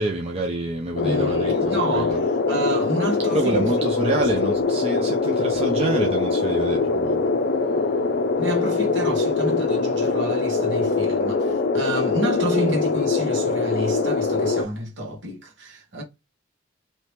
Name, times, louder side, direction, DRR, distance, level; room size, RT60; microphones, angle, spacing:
voice 1, 0.0-2.2 3.3-8.5, right 2 dB, 30° right, 0.4 m, -27 dB
sound 1, 1.0-14.6, left 3 dB, 55° left, 0.4 m, -23 dB
voice 2, 1.0-3.7 8.4-16.0, right 1 dB, 65° right, 1.3 m, -29 dB
2.9 x 2.8 x 3.3 m
head